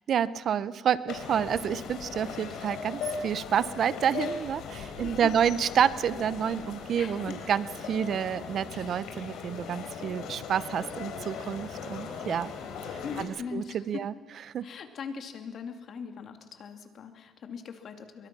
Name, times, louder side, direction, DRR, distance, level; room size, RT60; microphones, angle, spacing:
voice 1, 0.1-12.5 13.2-14.1 14.5-14.7, right 8 dB, 55° right, 17 dB, 0.7 m, -29 dB
sound 1, 1.1-13.2, left 6 dB, 80° left, 3.8 m, -39 dB
voice 2, 5.0-5.3 7.0-7.4 13.0-14.0 14.6-18.3, left 6 dB, 55° left, 6 dB, 2.6 m, -40 dB
25.0 x 23.0 x 6.1 m, 1.3 s
cardioid pair, 115°, 0 cm